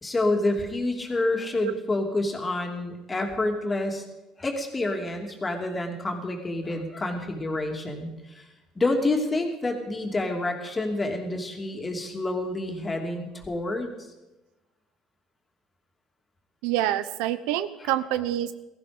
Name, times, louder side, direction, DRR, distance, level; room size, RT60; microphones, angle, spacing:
voice 1, 0.0-4.0 4.4-8.4 8.7-13.9 17.8-17.9, left 2 dB, 20° left, 2 dB, 2.8 m, -28 dB
voice 2, 16.6-18.5, right 12 dB, 85° right, 13 dB, 0.8 m, -26 dB
17.0 x 15.0 x 5.3 m, 1.0 s
cardioid pair, 110°, 0 cm